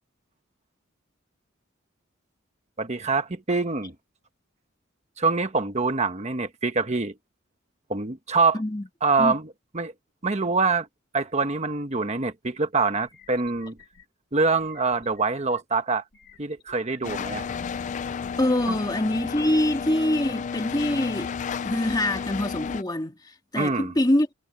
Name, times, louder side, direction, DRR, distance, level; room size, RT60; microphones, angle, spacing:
voice 1, 2.8-3.9 5.2-7.1 7.9-8.6 9.0-9.9 10.2-10.9 11.1-13.8 14.3-16.0 16.4-17.5 18.7-18.8 23.6-23.9, right 4 dB, 35° right, 1.1 m, -25 dB
voice 2, 8.5-8.9 9.2-9.4 18.4-21.3 21.6-23.2 23.5-24.3, left 1 dB, 20° left, 1.9 m, -24 dB
sound 1, 12.5-12.6 13.0-14.1 14.6-15.6 16.1-17.2, left 4 dB, 55° left, 4.0 m, -54 dB
sound 2, 17.0-22.8, left 6 dB, 35° left, 0.3 m, -32 dB
head